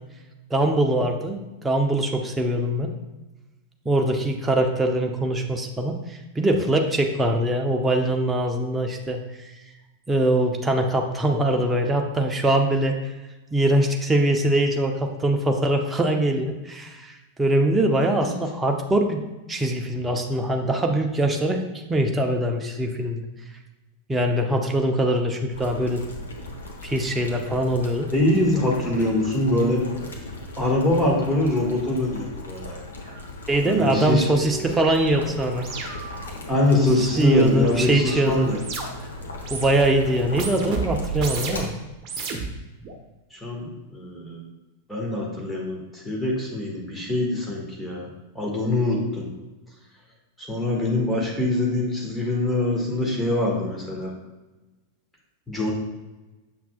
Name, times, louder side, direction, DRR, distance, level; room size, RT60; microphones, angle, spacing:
voice 1, 0.5-1.4 1.6-2.9 3.8-9.5 10.1-12.9 13.5-19.2 19.5-23.2 24.1-26.0 26.8-28.1 33.5-35.7 36.8-38.5 39.5-41.7, right 1 dB, 10° right, 3 dB, 0.8 m, -22 dB
voice 2, 11.3-11.7 28.1-29.8 30.6-32.8 33.6-34.3 36.5-38.6 43.3-44.4 44.9-48.1 48.3-49.3 50.5-54.1 55.5-55.7, left 1 dB, 5° left, -3 dB, 1.8 m, -24 dB
Boiling, 25.5-41.6, left 2 dB, 70° left, 1.1 m, -38 dB
sound 1, 33.1-33.2 33.5-39.1 39.4-39.9 40.3-41.7 42.0-42.9, right 4 dB, 35° right, 1.1 m, -34 dB
7.3 x 5.8 x 2.4 m, 1.1 s
figure-of-eight pair, 90°, 0 cm